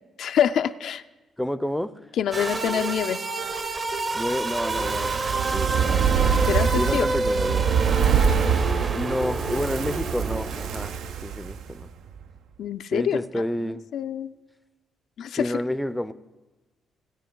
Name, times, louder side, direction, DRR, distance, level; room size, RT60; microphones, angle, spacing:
voice 1, 0.2-1.0 2.2-3.2 6.5-7.1 12.6-13.2 13.9-14.3 15.2-15.5, left 9 dB, 70° left, 10 dB, 0.4 m, -25 dB
voice 2, 1.4-1.9 4.1-5.1 5.5-6.3 6.7-7.7 8.9-11.9 12.9-13.8 15.3-16.1, left 1 dB, 5° left, 13 dB, 0.4 m, -29 dB
sound 1, 2.3-11.1, right 2 dB, 35° right, 0.7 m, -29 dB
Female singing, 2.5-5.8 7.8-7.9, right 6 dB, 65° right, 0.9 m, -40 dB
Fire, 4.5-11.9 12.2-12.3, right 7 dB, 80° right, 0.5 m, -25 dB
16.5 x 9.1 x 3.8 m, 1.2 s
cardioid pair, 90°, 0 cm